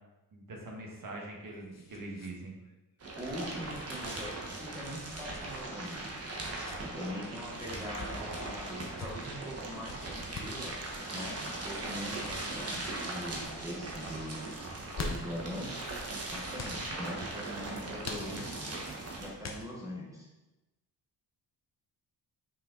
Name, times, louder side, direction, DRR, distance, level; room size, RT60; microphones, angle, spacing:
voice 1, 0.3-2.5, right 2 dB, 50° right, 0 dB, 1.4 m, -43 dB
sound 1, 1.0-2.3 2.6-2.7 3.7-4.0 5.1-5.5 6.4-6.8 7.7-8.1 8.8-9.1 9.8-10.6 11.8-12.1 12.7-13.1 13.4-13.6 14.7-15.4 16.5-16.8 18.0-18.7 19.4-19.9, left 3 dB, 40° left, 0.8 m, -43 dB
sound 2, 3.0-19.3, right 2 dB, 35° right, 1.1 m, -39 dB
voice 2, 3.1-6.3 6.8-10.7 11.1-14.5 14.9-15.8 16.3-18.7 19.2-20.3, equal, 10° right, -4 dB, 1.1 m, -42 dB
Wood, 6.0-6.1 6.7-6.8 7.3-7.4 7.9-8.1 8.5-8.7 9.1-9.2 9.6-9.8 10.2-10.3 10.8-10.9 11.4-11.5 12.1-12.2 12.7-12.9 13.3-13.5 13.9-14.1 14.6-14.7 15.1-15.3 15.8-15.9 16.5-16.6 17.7-17.8 18.5-18.6 19.2-19.3, right 6 dB, 85° right, 0.7 m, -54 dB
5.7 x 4.9 x 3.8 m, 1.1 s
wide cardioid pair, 155°, 41 cm